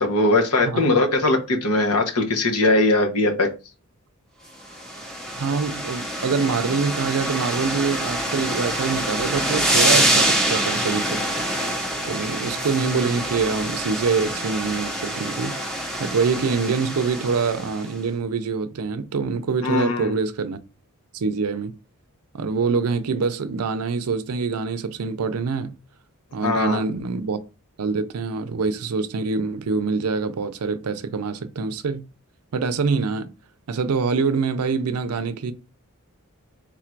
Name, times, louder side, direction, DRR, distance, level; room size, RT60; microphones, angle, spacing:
voice 1, 0.0-3.5 19.6-20.1 26.4-26.8, left 2 dB, 70° left, 1.0 m, -20 dB
sound 1, 4.7-17.9, right 1 dB, 5° left, 0.8 m, -25 dB
voice 2, 5.3-11.2 12.1-20.6 21.1-21.7 22.3-25.8 26.3-27.4 27.8-32.0 32.5-33.3 33.7-35.5, right 5 dB, 90° right, 0.5 m, -25 dB
3.7 x 2.5 x 4.4 m
head